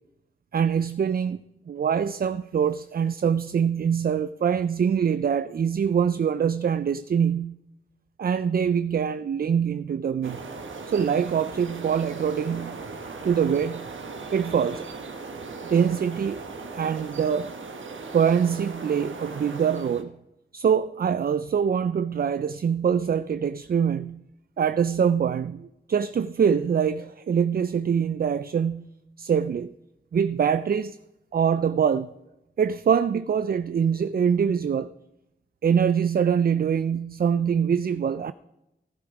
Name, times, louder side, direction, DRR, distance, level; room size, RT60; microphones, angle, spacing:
voice 1, 0.5-1.4 1.7-7.6 8.2-10.4 10.9-12.8 13.2-13.9 14.3-14.9 15.6-16.4 16.7-17.5 18.1-20.2 20.5-24.2 24.6-28.9 29.2-29.7 30.1-31.0 31.3-32.1 32.6-34.9 35.6-38.3, right 7 dB, 50° right, 0.4 m, -24 dB
sound 1, 10.2-20.0, right 4 dB, 80° right, 1.3 m, -38 dB
15.0 x 12.5 x 4.9 m
wide cardioid pair, 70°, 20 cm